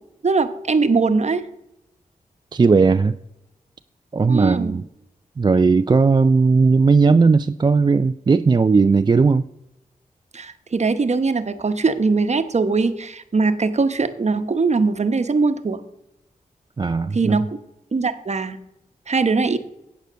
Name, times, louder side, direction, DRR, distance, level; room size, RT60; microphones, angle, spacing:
voice 1, 0.2-1.4 4.3-4.8 10.3-15.8 17.1-17.6 17.9-18.6 19.1-19.6, right 4 dB, 50° right, 1.0 m, -21 dB
voice 2, 2.5-3.2 4.1-4.8 5.4-9.5 16.8-17.4, right 4 dB, 30° right, 0.3 m, -16 dB
9.2 x 8.2 x 6.3 m
cardioid pair, 55°, 15 cm